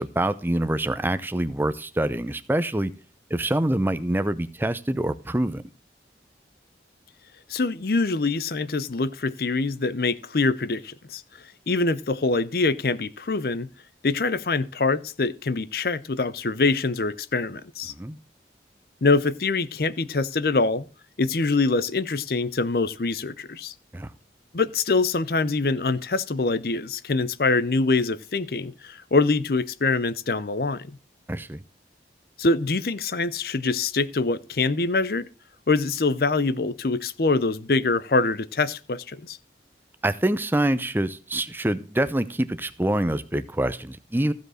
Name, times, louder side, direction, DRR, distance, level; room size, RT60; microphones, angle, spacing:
voice 1, 0.0-2.9 3.3-5.6 17.9-18.2 23.9-24.1 31.3-31.6 40.0-44.3, right 1 dB, 10° right, 0.5 m, -25 dB
voice 2, 7.5-13.7 14.0-17.9 19.0-20.8 21.2-23.7 24.5-30.9 32.4-35.3 35.7-39.4, left 3 dB, 55° left, 0.6 m, -24 dB
15.0 x 5.2 x 6.3 m
head